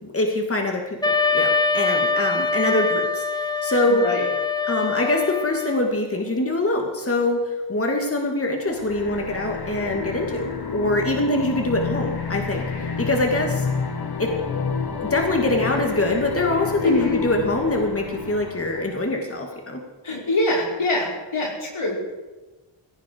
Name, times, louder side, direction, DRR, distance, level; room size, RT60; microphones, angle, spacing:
voice 1, 0.1-4.1 4.7-13.7 14.2-14.4 15.0-19.8, left 1 dB, 30° left, 2 dB, 2.4 m, -24 dB
Wind instrument woodwind instrument, 1.0-5.9, left 4 dB, 10° left, 0.9 m, -23 dB
voice 2, 3.9-4.3 16.8-17.2 20.0-22.1, left 2 dB, 75° left, -2 dB, 4.8 m, -24 dB
sound 1, 8.7-19.2, left 5 dB, 50° left, 1.7 m, -30 dB
17.0 x 16.0 x 4.7 m, 1.2 s
cardioid pair, 65°, 48 cm